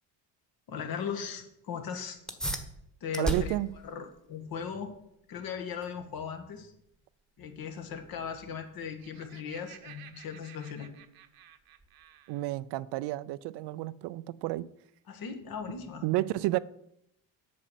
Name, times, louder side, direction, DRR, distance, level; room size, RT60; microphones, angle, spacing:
voice 1, 0.7-2.2 3.0-3.6 3.8-4.9 5.3-6.7 7.4-10.9 15.1-16.1, left 7 dB, 55° left, 5 dB, 1.8 m, -38 dB
sound 1, 2.2-12.2, right 1 dB, ahead, 1.3 m, -41 dB
voice 2, 3.2-3.7 12.3-14.7 16.0-16.6, right 17 dB, 75° right, 17 dB, 0.6 m, -31 dB
Laughter, 8.7-12.5, right 11 dB, 60° right, 1.0 m, -54 dB
8.5 x 6.4 x 7.5 m, 0.76 s
cardioid pair, 110°, 41 cm